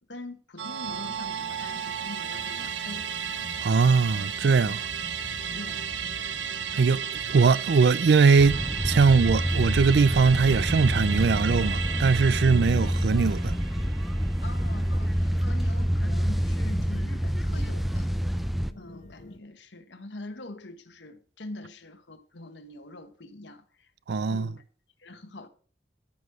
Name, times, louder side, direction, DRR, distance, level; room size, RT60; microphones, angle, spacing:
voice 1, 0.1-3.1 5.5-5.8 12.7-12.9 14.4-18.1 18.7-23.9 24.3-24.6 25.0-25.5, left 2 dB, 80° left, 1.3 m, -43 dB
Musical instrument, 0.6-15.3 15.6-15.7, right 8 dB, 90° right, 0.8 m, -34 dB
sound 1, 0.8-19.4, left 2 dB, 40° left, 0.6 m, -47 dB
voice 2, 3.6-4.8 6.7-13.6 24.1-24.5, right 5 dB, 65° right, 0.4 m, -21 dB
sound 2, 8.4-18.7, equal, ahead, 0.5 m, -27 dB
14.0 x 6.3 x 4.8 m
head